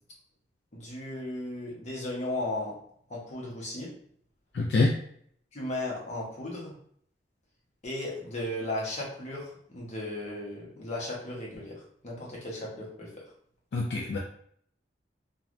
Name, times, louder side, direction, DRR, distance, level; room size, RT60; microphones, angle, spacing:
voice 1, 0.7-2.8 3.1-3.9 5.5-6.7 7.8-13.2, left 1 dB, 40° left, -3 dB, 0.8 m, -36 dB
voice 2, 4.5-4.9 13.7-14.2, left 3 dB, 65° left, -1 dB, 0.4 m, -25 dB
3.1 x 2.3 x 2.5 m, 0.63 s
head